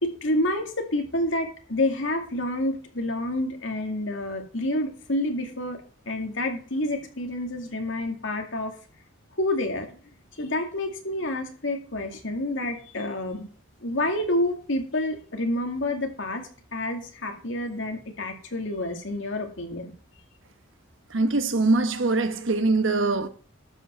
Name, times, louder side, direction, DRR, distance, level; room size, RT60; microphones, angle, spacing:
voice 1, 0.0-8.7 9.4-10.0 10.3-13.5 13.8-16.4 16.7-19.9, left 1 dB, 65° left, 2.4 m, -28 dB
voice 2, 21.1-23.3, right 3 dB, 70° right, 1.2 m, -23 dB
12.5 x 5.6 x 6.2 m
head